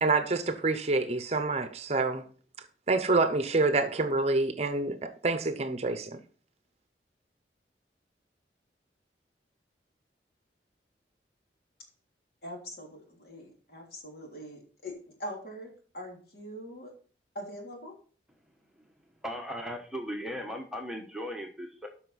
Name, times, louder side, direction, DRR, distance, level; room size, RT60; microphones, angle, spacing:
voice 1, 0.0-2.3 2.9-6.2, right 3 dB, 35° right, 0.8 m, -27 dB
voice 2, 12.4-16.9 17.3-17.9, equal, 60° left, 3.2 m, -43 dB
voice 3, 19.2-21.9, equal, 5° right, 1.1 m, -37 dB
12.5 x 5.8 x 4.1 m
head